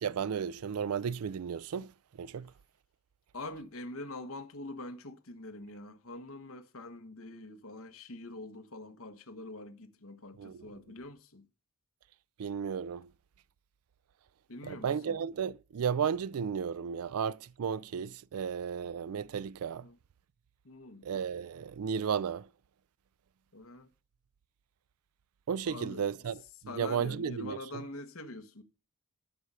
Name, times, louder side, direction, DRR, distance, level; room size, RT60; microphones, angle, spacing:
voice 1, 0.0-1.9 2.2-2.5 10.4-10.6 12.4-13.1 14.6-19.9 21.0-22.5 25.5-26.4 26.7-27.6, right 7 dB, 90° right, 0.4 m, -34 dB
voice 2, 3.3-11.5 14.5-15.2 19.8-20.0 20.6-21.1 23.5-23.9 25.6-26.0 26.7-28.6, left 2 dB, 70° left, 1.3 m, -44 dB
13.0 x 5.6 x 4.8 m
head